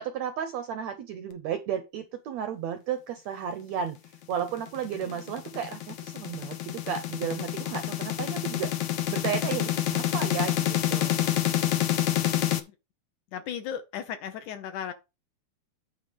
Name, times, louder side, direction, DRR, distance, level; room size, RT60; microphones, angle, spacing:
voice 1, 0.0-4.0 4.3-11.4, right 8 dB, 80° right, 1.6 m, -33 dB
sound 1, 4.5-12.6, left 12 dB, 90° left, 1.3 m, -28 dB
voice 2, 13.3-14.9, left 9 dB, 70° left, 2.1 m, -36 dB
9.3 x 3.6 x 6.9 m
omnidirectional pair, 4.2 m